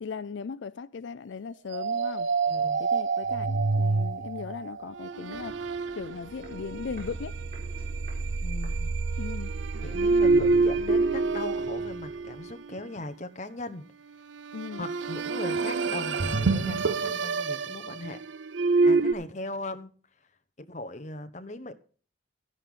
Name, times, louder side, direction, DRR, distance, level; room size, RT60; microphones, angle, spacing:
voice 1, 0.0-2.3 2.8-5.6 5.9-7.4 9.2-9.5 14.5-14.9, left 5 dB, 70° left, 0.4 m, -38 dB
sound 1, 1.7-12.8 14.3-19.1, right 3 dB, 75° right, 0.6 m, -27 dB
voice 2, 2.5-2.8 8.4-8.9 9.8-13.8 14.8-18.2 18.8-19.9 20.6-21.7, left 2 dB, 40° left, 1.1 m, -38 dB
Walk footsteps, 4.7-9.4 9.7-9.8, right 1 dB, 50° right, 4.3 m, -50 dB
12.0 x 11.0 x 3.7 m
head